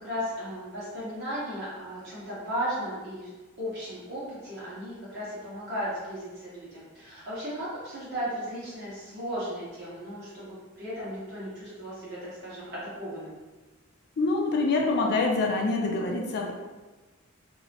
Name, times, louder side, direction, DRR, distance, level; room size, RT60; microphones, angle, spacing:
voice 1, 0.0-3.3 3.6-13.4, equal, 50° right, -9 dB, 1.2 m, -35 dB
voice 2, 14.2-16.5, left 3 dB, 50° left, 1 dB, 0.4 m, -25 dB
2.8 x 2.0 x 2.8 m, 1.2 s
head